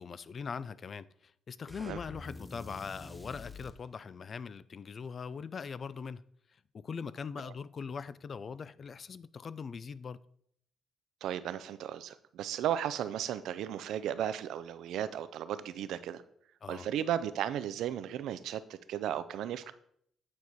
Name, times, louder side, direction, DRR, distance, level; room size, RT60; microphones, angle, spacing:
voice 1, 0.0-6.2 6.7-10.2 16.6-16.9, left 6 dB, 45° left, 0.3 m, -41 dB
sound 1, 1.7-3.8, left 2 dB, 10° left, 0.6 m, -47 dB
voice 2, 11.2-16.2 16.7-19.7, right 10 dB, 80° right, 0.4 m, -35 dB
8.6 x 4.6 x 4.1 m
cardioid pair, 90°, 0 cm